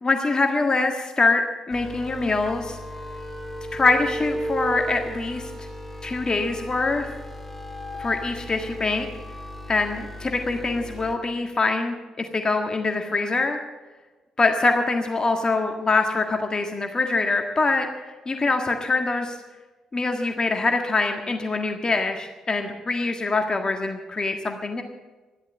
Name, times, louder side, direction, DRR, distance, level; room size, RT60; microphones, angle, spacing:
voice 1, 0.0-2.8 3.7-5.5 6.0-7.1 8.0-9.1 9.7-13.6 14.4-17.9 18.3-19.4 19.9-24.8, left 3 dB, 35° left, 4 dB, 1.6 m, -24 dB
sound 1, 1.7-11.1, equal, 10° left, 2.4 m, -35 dB
13.5 x 12.0 x 7.4 m, 1.2 s
hypercardioid pair, 45°, 2 cm